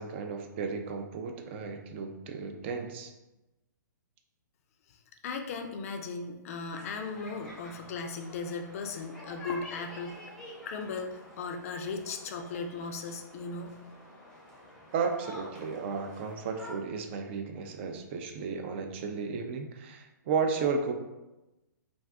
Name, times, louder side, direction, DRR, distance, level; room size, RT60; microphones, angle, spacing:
voice 1, 0.0-3.1 14.9-20.9, right 5 dB, 35° right, 5 dB, 0.3 m, -33 dB
voice 2, 5.2-10.2 10.7-13.8, left 4 dB, 45° left, 4 dB, 0.4 m, -37 dB
sound 1, 6.7-16.8, left 1 dB, 5° left, 0.6 m, -49 dB
2.4 x 2.4 x 3.4 m, 1.0 s
hypercardioid pair, 145°, 10 cm